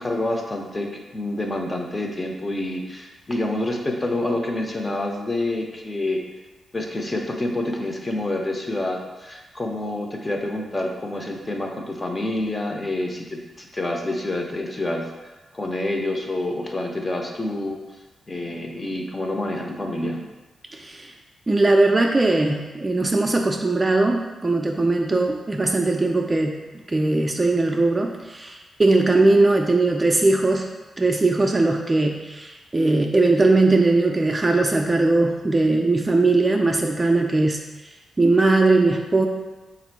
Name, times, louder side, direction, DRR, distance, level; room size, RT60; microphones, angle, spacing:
voice 1, 0.0-6.2 6.7-15.1 15.5-17.8 18.3-20.2, left 1 dB, 25° left, 1 dB, 0.5 m, -27 dB
voice 2, 20.7-21.1 21.5-26.6 26.9-30.7 31.0-37.6 38.2-39.3, right 2 dB, 25° right, 2 dB, 0.3 m, -19 dB
3.5 x 2.5 x 4.5 m, 1.2 s
cardioid pair, 100°, 0 cm